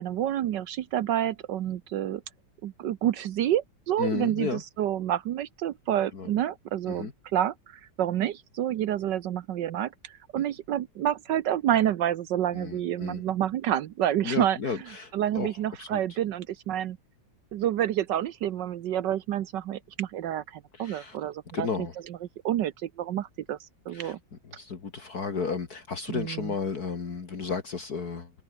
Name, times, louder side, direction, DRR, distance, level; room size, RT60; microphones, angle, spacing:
voice 1, 0.0-2.2 2.6-7.5 8.0-14.6 15.1-17.0 17.5-21.7 22.4-23.6 23.9-24.2 26.1-26.5, right 11 dB, 75° right, 1.5 m, -28 dB
voice 2, 4.0-4.6 6.1-6.3 6.9-7.1 12.5-13.2 14.2-15.5 15.8-16.0 20.7-21.2 21.5-21.9 23.9-24.1 24.4-28.4, left 5 dB, 55° left, 2.6 m, -33 dB
omnidirectional pair, 2.0 m